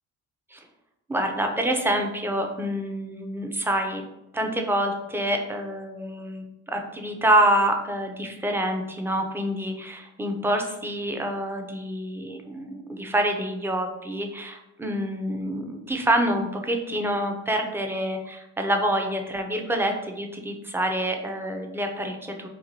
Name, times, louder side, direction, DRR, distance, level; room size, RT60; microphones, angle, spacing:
voice 1, 1.1-4.0 4.3-22.5, right 1 dB, 10° right, 3 dB, 0.3 m, -27 dB
2.8 x 2.2 x 2.6 m, 0.93 s
cardioid pair, 90°, 30 cm